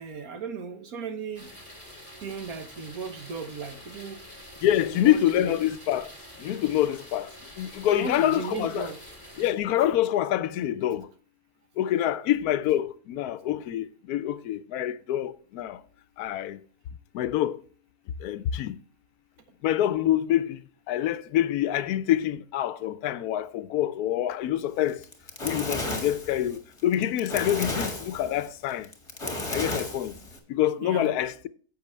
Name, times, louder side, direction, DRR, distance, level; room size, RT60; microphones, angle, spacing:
voice 1, 0.0-1.5 2.2-4.2 4.7-5.6 7.9-9.0 30.8-31.1, right 5 dB, 70° right, 1.6 m, -36 dB
sound 1, 1.4-9.5, equal, 20° right, 2.1 m, -47 dB
voice 2, 4.6-6.1 6.4-8.9 9.4-11.1 11.8-15.8 16.2-16.6 17.1-17.6 18.2-18.8 19.6-20.6 20.9-25.0 25.4-28.9 29.5-30.2 30.5-31.5, left 12 dB, 80° left, 1.1 m, -26 dB
Fire, 24.9-30.4, left 2 dB, 20° left, 1.4 m, -33 dB
10.5 x 7.5 x 3.2 m
omnidirectional pair, 1.6 m